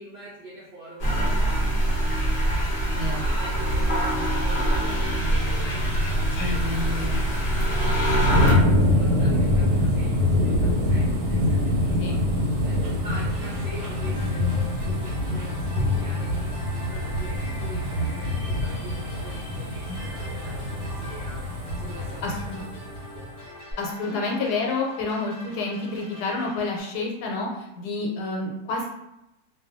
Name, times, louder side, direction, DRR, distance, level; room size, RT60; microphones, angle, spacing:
voice 1, 0.0-2.6 2.9-6.6 6.9-7.9 8.2-12.1 12.6-21.4 21.8-23.6 24.1-24.2, right 1 dB, 65° right, -8 dB, 0.6 m, -43 dB
sound 1, 1.0-8.5, right 1 dB, 50° left, 0.7 m, -24 dB
sound 2, 5.3-23.3 23.7-23.8, left 1 dB, 90° right, 1.2 m, -25 dB
voice 2, 6.4-7.2 12.0-12.2 19.9-20.0 22.2-22.6 23.8-28.9, left 3 dB, 80° left, -1 dB, 1.2 m, -29 dB
sound 3, 13.1-26.8, left 1 dB, 25° left, 0.9 m, -44 dB
2.5 x 2.3 x 2.5 m, 0.89 s
omnidirectional pair, 1.7 m